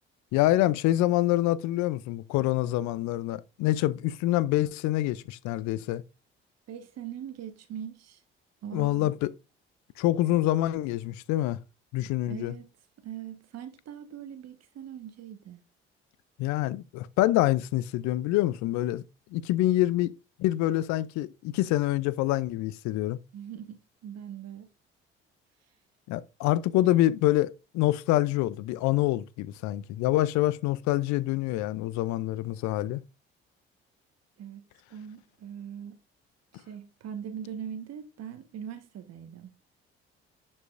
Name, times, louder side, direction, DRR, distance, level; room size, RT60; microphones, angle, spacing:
voice 1, 0.3-6.0 8.7-9.3 10.0-11.6 11.9-12.5 16.4-19.0 19.3-20.1 20.4-23.2 26.1-33.0, left 15 dB, 70° left, 0.6 m, -26 dB
voice 2, 6.7-8.2 8.6-9.1 12.3-12.7 13.0-15.6 23.3-24.7 34.4-34.6 34.9-36.0 36.5-39.5, right 8 dB, 60° right, 1.5 m, -41 dB
11.0 x 5.5 x 2.6 m
hypercardioid pair, 55°, 30 cm